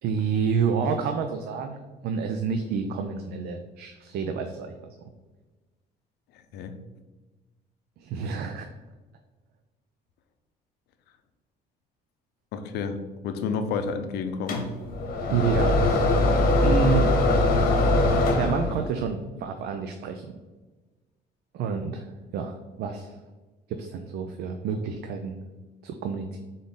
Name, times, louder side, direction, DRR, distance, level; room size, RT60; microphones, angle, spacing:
voice 1, 0.0-4.9 8.0-8.7 15.3-16.3 16.6-17.1 18.3-20.2 21.5-23.1 23.7-25.4 25.8-26.4, right 6 dB, 70° right, 6 dB, 0.4 m, -29 dB
voice 2, 12.5-14.7, left 5 dB, 80° left, 8 dB, 0.5 m, -30 dB
sound 1, 14.5-19.0, left 2 dB, 60° left, 1.0 m, -22 dB
3.7 x 3.6 x 3.9 m, 1.2 s
cardioid pair, 110°, 17 cm